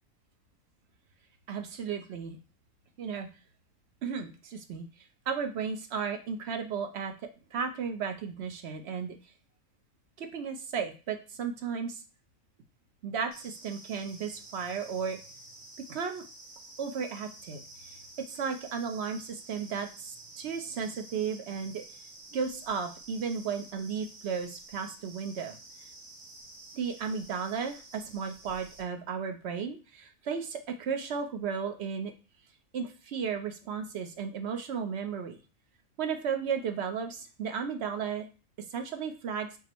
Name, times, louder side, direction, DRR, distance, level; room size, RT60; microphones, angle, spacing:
voice 1, 1.5-2.4 3.0-3.3 4.0-4.9 5.3-7.1 7.5-9.2 10.2-12.0 13.0-15.2 15.9-16.2 16.8-17.6 17.9-21.8 22.3-25.6 26.7-32.1 32.7-35.4 36.0-38.3 38.7-39.5, right 6 dB, 60° right, 6 dB, 0.8 m, -34 dB
sound 1, 13.3-28.8, right 2 dB, 90° right, 1.7 m, -50 dB
5.9 x 2.1 x 4.3 m, 0.33 s
omnidirectional pair, 1.4 m